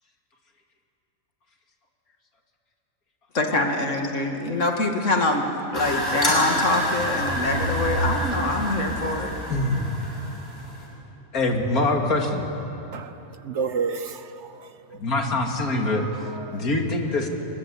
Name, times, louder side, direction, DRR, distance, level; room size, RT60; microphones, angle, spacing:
voice 1, 3.3-5.4 5.7-9.3, left 2 dB, 55° left, 3 dB, 2.6 m, -24 dB
sound 1, 5.7-10.8, equal, 15° left, 7.1 m, -27 dB
voice 2, 9.5-9.9 11.3-12.5 15.0-16.1 16.5-17.3, left 2 dB, 85° left, 2 dB, 2.8 m, -24 dB
voice 3, 12.9-15.0 15.9-16.6, right 5 dB, 55° right, 11 dB, 1.1 m, -32 dB
22.5 x 21.5 x 9.8 m, 2.9 s
omnidirectional pair, 1.5 m